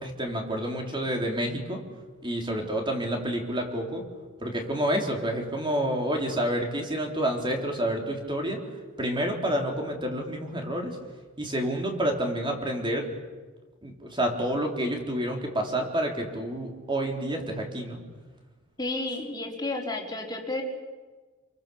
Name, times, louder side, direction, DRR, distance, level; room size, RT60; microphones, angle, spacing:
voice 1, 0.0-1.8 2.2-4.0 4.4-8.6 9.0-10.9 11.4-13.1 13.8-18.0, right 1 dB, 25° right, 2 dB, 3.7 m, -29 dB
voice 2, 18.8-20.6, left 2 dB, 20° left, 0 dB, 3.9 m, -31 dB
28.5 x 23.5 x 7.1 m, 1.3 s
head